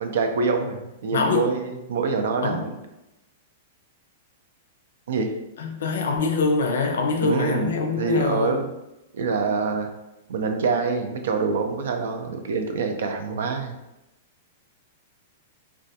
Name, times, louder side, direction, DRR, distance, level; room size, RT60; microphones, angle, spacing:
voice 1, 0.0-2.8 5.1-5.3 7.2-8.7 9.1-9.9 10.3-13.8, right 4 dB, 80° right, 5 dB, 0.4 m, -25 dB
voice 2, 1.1-1.5 2.4-2.7 5.6-8.7, left 4 dB, 80° left, 3 dB, 0.4 m, -24 dB
2.3 x 2.2 x 2.7 m, 0.94 s
hypercardioid pair, 155°, 0 cm